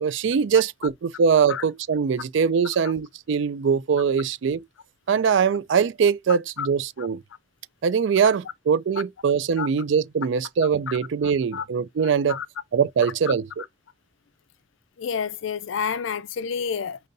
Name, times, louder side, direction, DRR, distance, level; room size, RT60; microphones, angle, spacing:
voice 1, 0.0-4.6 5.1-7.2 7.8-12.4 12.7-13.5, right 6 dB, 65° right, 0.4 m, -22 dB
voice 2, 12.0-12.5 13.3-13.4 15.0-17.0, left 6 dB, 70° left, 0.4 m, -29 dB
5.2 x 2.8 x 2.6 m
head